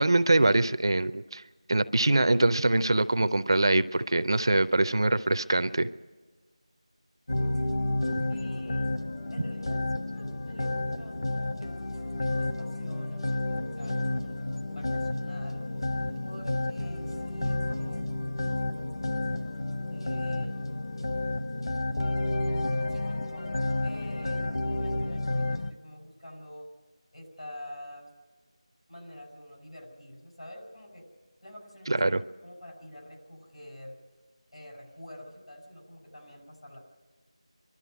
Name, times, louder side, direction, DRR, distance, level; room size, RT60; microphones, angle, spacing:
voice 1, 0.0-1.4 1.7-5.9 31.9-32.2, right 2 dB, 45° right, 13 dB, 0.5 m, -23 dB
sound 1, 7.3-25.7, left 2 dB, 50° left, 1.1 m, -31 dB
voice 2, 8.3-8.9 9.3-11.9 12.2-14.5 14.7-18.1 18.5-18.6 19.9-20.7 22.9-23.5 23.8-26.7 27.1-28.1 28.9-31.1 31.4-34.0 34.5-36.8, left 1 dB, 80° left, 2 dB, 6.4 m, -47 dB
25.0 x 12.5 x 9.3 m, 1.4 s
figure-of-eight pair, 170°, 3 cm